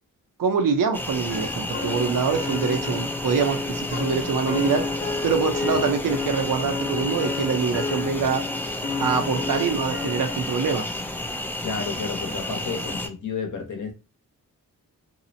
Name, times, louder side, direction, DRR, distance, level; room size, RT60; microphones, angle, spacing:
voice 1, 0.4-4.8 5.2-8.4 9.0-10.9, right 5 dB, 75° right, 0.6 m, -24 dB
sound 1, 0.9-13.1, left 1 dB, 5° left, 0.3 m, -31 dB
sound 2, 1.3-10.8, left 4 dB, 30° left, 0.8 m, -31 dB
voice 2, 11.6-13.9, left 5 dB, 65° left, 0.8 m, -31 dB
2.7 x 2.0 x 2.6 m
cardioid pair, 85°, 34 cm